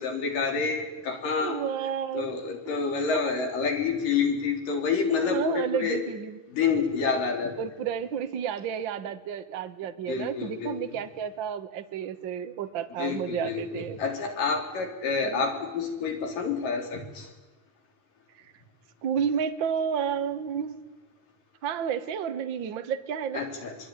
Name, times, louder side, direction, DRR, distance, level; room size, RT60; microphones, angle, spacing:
voice 1, 0.0-1.6 2.1-6.0 6.5-7.5 10.1-10.8 13.0-17.3 23.3-23.7, left 5 dB, 85° left, 3 dB, 5.1 m, -28 dB
voice 2, 1.4-2.3 3.1-3.2 5.2-6.4 7.6-14.0 15.2-15.4 19.0-20.8 21.6-23.5, right 7 dB, 50° right, 8 dB, 1.6 m, -31 dB
25.0 x 22.0 x 9.9 m, 1.1 s
omnidirectional pair, 3.7 m